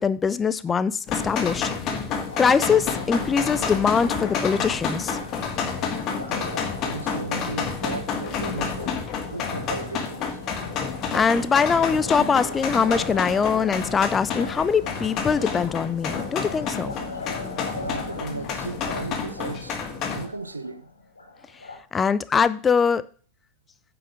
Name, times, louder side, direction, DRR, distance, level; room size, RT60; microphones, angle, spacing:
voice 1, 0.0-1.7 2.4-5.2 11.1-16.9 21.9-23.0, left 6 dB, 20° left, 0.6 m, -22 dB
sound 1, 1.1-20.3, left 6 dB, 35° left, 1.7 m, -30 dB
Liquid, 2.3-21.8, left 3 dB, 80° left, 1.8 m, -40 dB
sound 2, 2.8-14.8, right 6 dB, 40° right, 2.4 m, -51 dB
voice 2, 6.3-10.4 17.7-19.8 20.1-20.9, right 3 dB, 80° right, 0.7 m, -35 dB
9.3 x 5.9 x 4.9 m
figure-of-eight pair, 90°, 0 cm